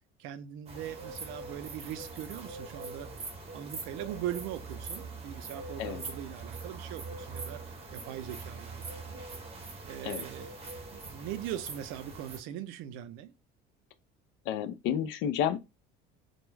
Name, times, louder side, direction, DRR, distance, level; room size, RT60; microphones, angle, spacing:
voice 1, 0.2-3.1 3.5-7.6 7.9-9.2 9.8-10.5 10.9-13.3, right 11 dB, 75° right, 0.4 m, -40 dB
sound 1, 0.7-12.4, right 3 dB, 30° right, 0.7 m, -42 dB
voice 2, 14.5-15.6, left 9 dB, 65° left, 0.4 m, -30 dB
2.2 x 2.1 x 3.1 m
cardioid pair, 140°, 21 cm